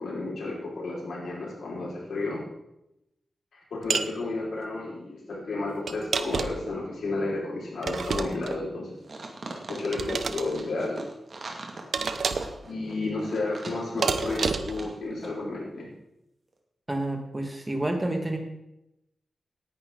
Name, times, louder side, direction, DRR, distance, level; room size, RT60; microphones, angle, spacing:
voice 1, 0.0-2.4 3.5-9.0 9.7-11.0 12.6-15.9, left 2 dB, 90° left, -4 dB, 5.1 m, -32 dB
sound 1, 3.9-4.1 5.9-6.7 7.8-8.6 9.9-10.5 11.9-12.6 14.0-14.8, right 5 dB, 65° right, 0.8 m, -29 dB
sound 2, 9.0-14.9 15.2-15.3, right 3 dB, 45° right, 2.2 m, -40 dB
voice 2, 16.9-18.4, right 1 dB, 15° right, 3 dB, 2.0 m, -29 dB
18.0 x 10.5 x 3.9 m, 0.86 s
wide cardioid pair, 160°, 0 cm